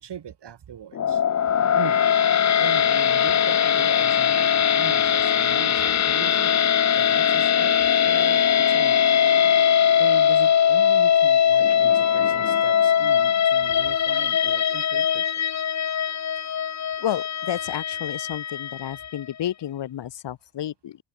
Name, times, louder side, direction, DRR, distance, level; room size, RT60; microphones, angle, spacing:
voice 1, 0.0-1.2 1.7-2.0 2.6-9.1 10.0-15.2, right 9 dB, 65° right, 4.6 m, -40 dB
sound 1, 0.9-19.2, left 8 dB, 40° left, 0.7 m, -21 dB
voice 2, 17.0-21.0, left 11 dB, 70° left, 1.5 m, -31 dB
open air
wide cardioid pair, 155°, 43 cm